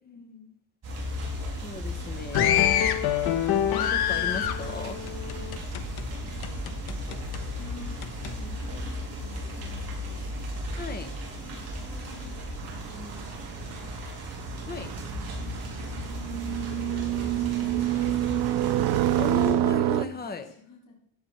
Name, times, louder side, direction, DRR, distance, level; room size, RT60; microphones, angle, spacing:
voice 1, 0.0-0.6 5.9-6.5 7.5-10.3 11.4-13.3 13.6-13.9 14.8-18.7 20.1-20.3 20.6-20.9, left 3 dB, 50° left, -3 dB, 4.1 m, -49 dB
sound 1, 0.8-19.5, equal, 40° right, 6.5 m, -36 dB
voice 2, 1.6-2.8 3.5-5.0 10.8-11.1 14.6-14.9 19.2-20.5, left 4 dB, 25° left, 8 dB, 1.3 m, -36 dB
sound 2, 2.3-6.0 6.4-7.4 8.0-8.3, left 10 dB, 65° left, 1.3 m, -26 dB
sound 3, 12.6-20.0, right 13 dB, 80° right, 0.7 m, -28 dB
16.5 x 11.0 x 4.4 m, 0.74 s
cardioid pair, 165°, 41 cm